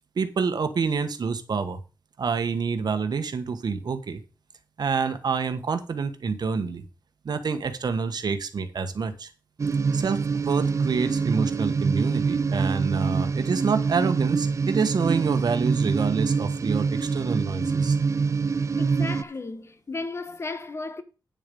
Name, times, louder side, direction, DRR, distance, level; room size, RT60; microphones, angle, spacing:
voice 1, 0.1-1.8 2.2-4.2 4.8-6.8 7.2-9.3 9.9-18.0, right 5 dB, 65° right, 1.3 m, -27 dB
sound 1, 9.6-19.2, right 5 dB, 40° right, 0.5 m, -25 dB
voice 2, 18.8-21.0, left 3 dB, 35° left, 1.2 m, -34 dB
9.1 x 7.0 x 5.3 m
wide cardioid pair, 115°, 8 cm